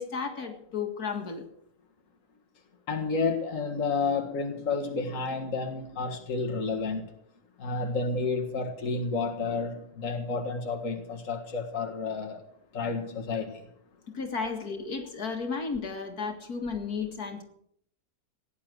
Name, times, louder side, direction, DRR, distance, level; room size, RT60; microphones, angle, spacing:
voice 1, 0.0-1.5 3.9-4.0 14.1-17.4, left 5 dB, 70° left, 4 dB, 2.4 m, -33 dB
voice 2, 2.9-7.0 7.6-12.4 12.7-13.6, left 4 dB, 55° left, 1 dB, 2.1 m, -30 dB
17.0 x 10.5 x 6.2 m, 0.69 s
omnidirectional pair, 1.7 m